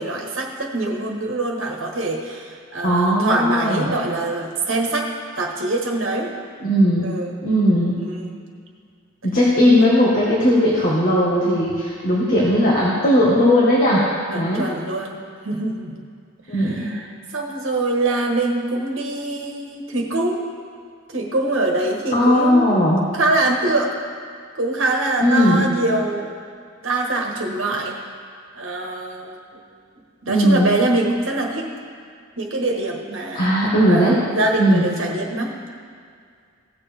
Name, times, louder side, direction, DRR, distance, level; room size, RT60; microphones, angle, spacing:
voice 1, 0.0-5.1 5.4-6.3 7.0-7.4 8.0-8.4 14.3-15.2 15.4-16.0 16.5-20.4 21.1-23.9 24.6-26.3 26.8-28.0 28.5-29.6 30.2-31.7 32.4-33.5 33.9-35.5, right 2 dB, 70° right, 1 dB, 1.4 m, -24 dB
voice 2, 2.8-4.0 6.6-7.1 7.4-8.0 9.2-14.0 14.3-14.7 16.5-16.9 22.1-23.0 25.2-25.7 30.3-30.7 33.3-34.1 34.6-34.9, equal, 45° left, -6 dB, 1.6 m, -17 dB
16.5 x 6.9 x 3.5 m, 2.1 s
head